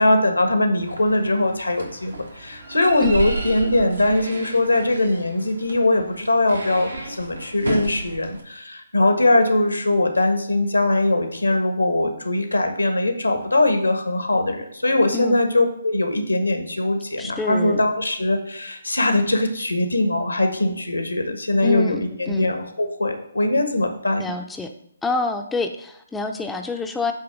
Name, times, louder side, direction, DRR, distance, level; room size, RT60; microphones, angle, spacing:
voice 1, 0.0-24.2, left 2 dB, 85° left, 6 dB, 1.2 m, -21 dB
sound 1, 0.8-8.4, right 3 dB, 80° right, 1.4 m, -33 dB
voice 2, 17.2-17.8 21.6-22.5 24.2-24.7 25.0-27.1, left 4 dB, 5° left, 4 dB, 0.5 m, -27 dB
8.8 x 3.0 x 6.1 m, 0.72 s
figure-of-eight pair, 135°, 0 cm